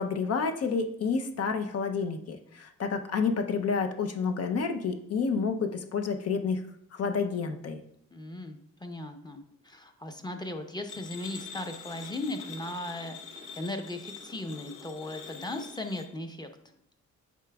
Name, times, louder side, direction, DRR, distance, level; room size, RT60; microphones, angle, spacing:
voice 1, 0.0-6.6 6.9-7.8, left 5 dB, 55° left, 6 dB, 0.7 m, -29 dB
voice 2, 8.1-16.5, left 1 dB, 15° left, 5 dB, 0.7 m, -37 dB
sound 1, 10.9-16.1, left 5 dB, 75° left, 1.0 m, -45 dB
8.2 x 4.9 x 2.3 m, 0.73 s
cardioid pair, 90°, 30 cm